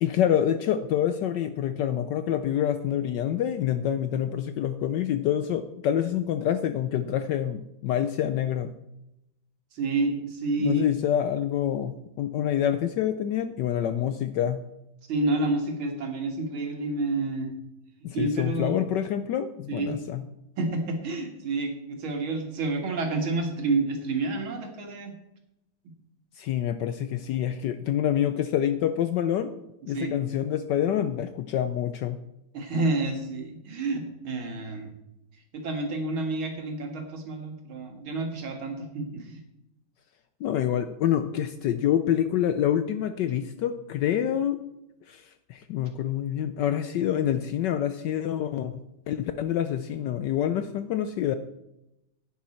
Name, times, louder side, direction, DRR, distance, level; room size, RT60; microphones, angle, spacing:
voice 1, 0.0-8.7 10.6-14.6 18.0-20.2 26.4-29.5 29.9-32.2 40.4-44.6 45.1-51.4, left 10 dB, 75° left, 10 dB, 1.0 m, -27 dB
voice 2, 9.7-10.8 15.1-17.5 18.1-18.8 19.7-20.0 20.6-25.1 29.9-30.1 32.5-34.9 35.5-39.4, right 2 dB, 75° right, 3 dB, 2.5 m, -29 dB
10.5 x 9.4 x 4.3 m, 0.89 s
omnidirectional pair, 2.3 m